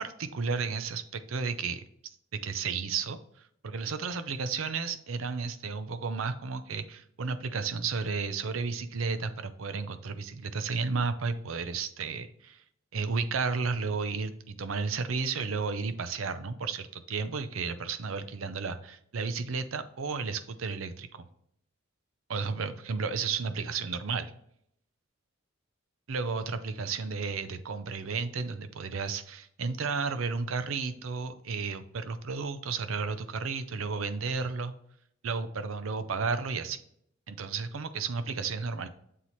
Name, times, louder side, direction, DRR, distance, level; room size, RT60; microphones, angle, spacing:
voice 1, 0.0-1.8 2.3-3.2 3.6-12.6 12.9-21.3 22.3-24.3 26.1-34.7 35.2-36.8 37.3-38.9, right 4 dB, 80° right, 11 dB, 0.6 m, -33 dB
7.4 x 4.1 x 3.1 m, 0.71 s
head